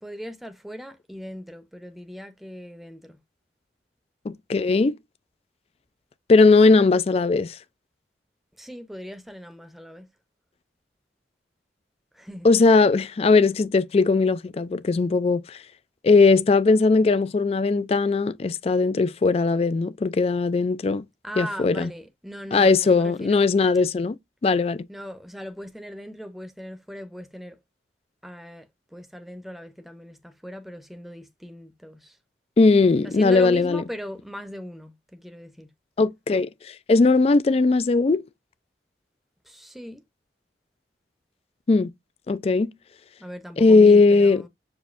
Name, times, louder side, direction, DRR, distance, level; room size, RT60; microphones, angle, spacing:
voice 1, 0.0-3.2 8.6-10.1 12.1-12.5 21.2-23.5 24.9-27.6 28.2-32.2 33.0-35.7 39.5-40.0 43.2-44.5, equal, ahead, 0.7 m, -38 dB
voice 2, 4.3-5.0 6.3-7.6 12.4-15.6 16.0-21.0 21.4-21.9 22.5-24.2 24.4-24.8 32.6-33.8 36.0-38.2 41.7-41.9 42.3-42.7 43.6-44.4, left 3 dB, 35° left, 0.3 m, -19 dB
7.0 x 2.6 x 2.5 m
head